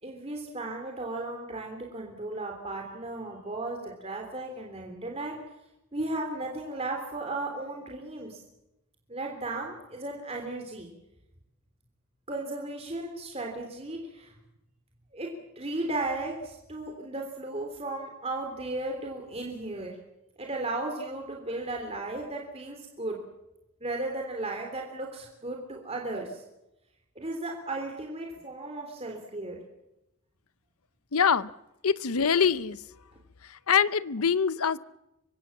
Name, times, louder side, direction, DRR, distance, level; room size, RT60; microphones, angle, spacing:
voice 1, 0.0-5.4 5.9-8.4 9.1-10.9 12.3-14.3 15.1-15.3 15.5-19.9 20.4-23.2 23.8-26.4 27.1-29.6, right 2 dB, 30° right, 1 dB, 3.3 m, -35 dB
voice 2, 31.1-31.5 31.8-32.8 33.7-34.8, left 6 dB, 85° left, 17 dB, 0.8 m, -24 dB
25.0 x 23.5 x 7.3 m, 0.90 s
head